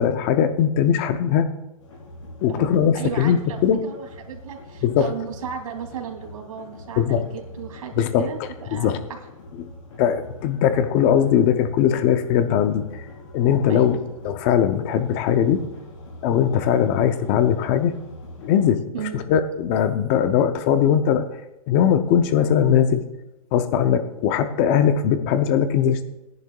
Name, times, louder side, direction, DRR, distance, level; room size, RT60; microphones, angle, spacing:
voice 1, 0.0-1.5 2.4-3.8 4.8-5.1 7.0-7.2 7.9-8.3 8.7-9.0 9.6-9.7 10.0-13.0 13.3-14.0 14.2-15.6 16.2-17.9 18.4-18.8 19.1-21.2 21.7-23.0 23.5-26.1, left 9 dB, 20° left, 10 dB, 0.5 m, -20 dB
sound 1, 1.8-18.7, left 1 dB, 60° left, 4.7 m, -43 dB
voice 2, 2.5-9.2 13.7-14.0 18.9-19.2, right 8 dB, 75° right, 2 dB, 2.6 m, -35 dB
19.0 x 10.5 x 2.3 m, 0.96 s
hypercardioid pair, 170°, 18 cm